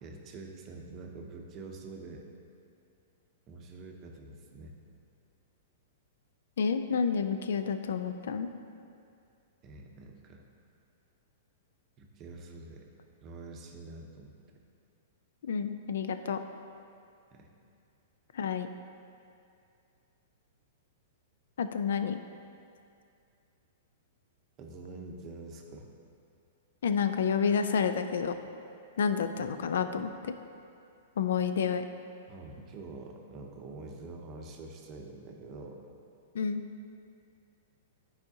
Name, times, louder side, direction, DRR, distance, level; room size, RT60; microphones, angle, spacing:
voice 1, 0.0-2.3 3.5-4.8 9.6-10.4 12.0-12.9 13.2-14.3 17.3-17.5 24.6-25.9 32.3-35.8, right 3 dB, 30° right, 1 dB, 0.8 m, -46 dB
voice 2, 6.6-8.5 15.4-16.4 18.3-18.7 21.6-22.2 26.8-28.3 29.0-30.3 31.2-31.8 36.3-36.6, left 6 dB, 80° left, 9 dB, 0.4 m, -29 dB
11.0 x 4.9 x 2.8 m, 2.5 s
hypercardioid pair, 150°, 0 cm